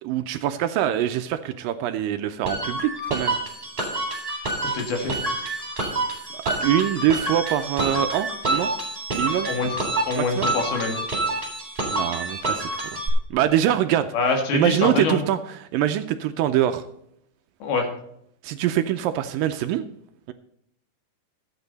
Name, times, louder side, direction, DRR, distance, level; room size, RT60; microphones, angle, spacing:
voice 1, 0.0-3.4 6.5-8.7 9.1-9.5 10.2-10.5 11.8-13.0 13.3-14.1 14.5-16.9 18.4-19.8, right 11 dB, 80° right, 9 dB, 2.1 m, -24 dB
sound 1, 2.4-13.1, right 2 dB, 15° right, 3.3 m, -28 dB
voice 2, 4.6-5.1 9.5-9.7 10.1-11.0 14.1-15.2 17.6-17.9, left 3 dB, 85° left, 3 dB, 3.8 m, -25 dB
14.0 x 8.8 x 4.0 m, 0.74 s
omnidirectional pair, 4.3 m